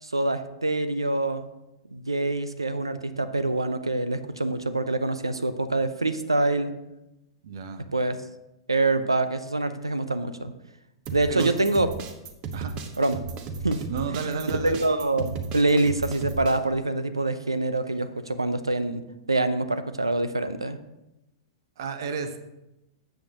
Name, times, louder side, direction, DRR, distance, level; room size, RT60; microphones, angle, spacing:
voice 1, 0.0-1.5 1.9-6.7 7.9-8.2 8.7-10.5 11.1-11.9 13.0-13.2 13.6-19.0 19.3-20.8, right 2 dB, 85° right, 12 dB, 0.7 m, -25 dB
voice 2, 7.4-7.8 11.3-11.5 12.5-12.7 13.9-14.8 21.8-22.4, right 6 dB, 60° right, 8 dB, 1.1 m, -31 dB
sound 1, 11.1-16.6, right 5 dB, 35° right, 1.0 m, -35 dB
13.0 x 8.0 x 3.0 m, 0.93 s
figure-of-eight pair, 105°, 3 cm